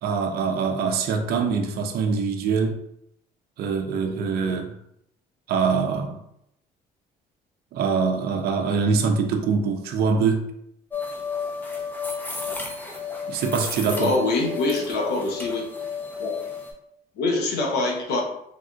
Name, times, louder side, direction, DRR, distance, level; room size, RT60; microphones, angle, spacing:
voice 1, 0.0-2.8 3.6-4.8 5.5-6.2 7.7-10.5 13.3-14.2, right 5 dB, 65° right, 4 dB, 0.5 m, -24 dB
sound 1, 10.9-16.7, left 5 dB, 10° left, 0.6 m, -32 dB
voice 2, 13.9-15.7 16.2-16.3 17.2-18.2, left 2 dB, 75° left, 0 dB, 0.9 m, -24 dB
3.2 x 2.6 x 2.4 m, 0.75 s
cardioid pair, 110°, 17 cm